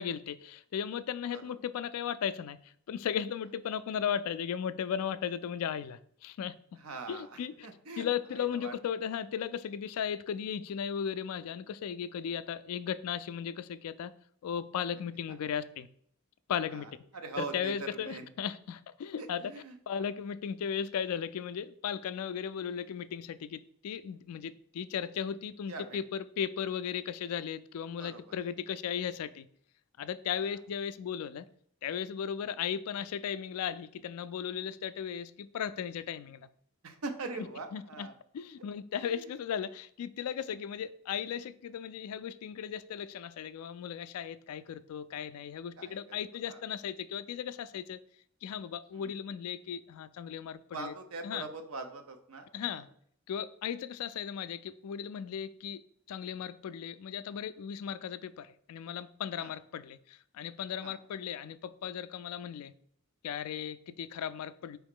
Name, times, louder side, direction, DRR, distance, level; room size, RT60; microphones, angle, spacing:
voice 1, 0.0-6.8 7.1-7.7 8.0-14.1 14.4-15.9 16.5-16.9 17.4-19.5 19.9-29.5 30.0-31.5 31.8-36.5 37.4-37.5 37.7-38.1 38.3-48.0 48.4-50.9 51.2-51.5 52.5-52.9 53.3-62.7 63.2-64.8, left 8 dB, 85° left, 0.3 m, -36 dB
voice 2, 6.8-8.1 8.4-8.7 16.7-18.3 19.2-20.1 25.7-26.0 28.0-28.2 32.4-32.5 36.8-38.1 39.0-39.3 40.5-40.6 45.8-46.2 46.5-46.6 48.9-49.1 50.7-52.5 59.4-59.5 60.8-61.0, right 3 dB, 80° right, 0.7 m, -42 dB
4.7 x 3.0 x 3.6 m
head